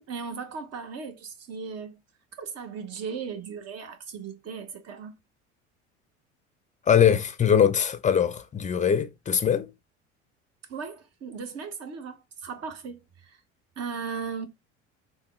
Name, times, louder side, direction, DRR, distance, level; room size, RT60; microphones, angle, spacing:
voice 1, 0.0-2.0 2.3-5.2 10.7-13.4 13.8-14.5, right 5 dB, 45° right, 1.0 m, -37 dB
voice 2, 6.9-9.7, left 8 dB, 20° left, 0.5 m, -22 dB
3.5 x 2.2 x 3.2 m
hypercardioid pair, 70°, 35 cm